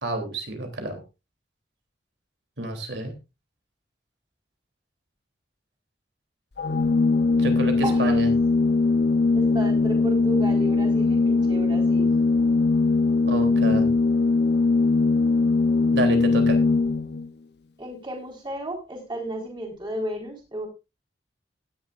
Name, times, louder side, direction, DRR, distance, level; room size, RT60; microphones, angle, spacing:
voice 1, 0.0-1.0 2.6-3.1 7.4-8.3 13.3-13.9 15.9-16.6, right 1 dB, 75° right, 4 dB, 3.3 m, -29 dB
Organ, 6.6-17.3, left 3 dB, 65° left, 0.8 m, -21 dB
voice 2, 7.8-8.3 9.3-12.2 17.8-20.7, right 1 dB, 25° right, 0 dB, 4.1 m, -33 dB
17.5 x 10.5 x 2.5 m, 0.27 s
head